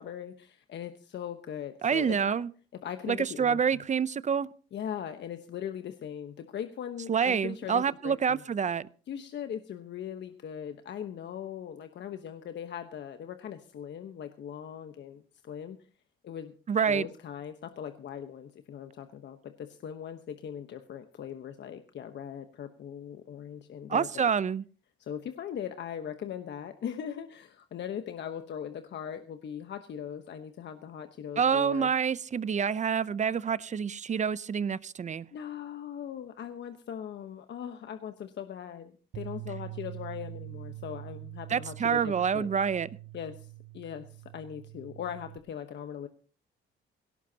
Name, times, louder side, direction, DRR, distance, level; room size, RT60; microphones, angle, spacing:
voice 1, 0.0-2.3 2.8-3.8 4.7-8.4 9.1-15.8 16.2-16.5 16.8-24.3 25.0-31.9 35.3-42.5 43.1-46.1, left 9 dB, 65° left, 1.1 m, -40 dB
voice 2, 1.8-2.5 3.1-4.5 7.1-8.9 16.7-17.1 23.9-24.6 31.4-35.3 41.5-42.9, right 7 dB, 35° right, 0.6 m, -27 dB
Bass guitar, 39.1-45.4, right 18 dB, 60° right, 0.9 m, -44 dB
18.0 x 17.5 x 2.9 m
cardioid pair, 90°, 20 cm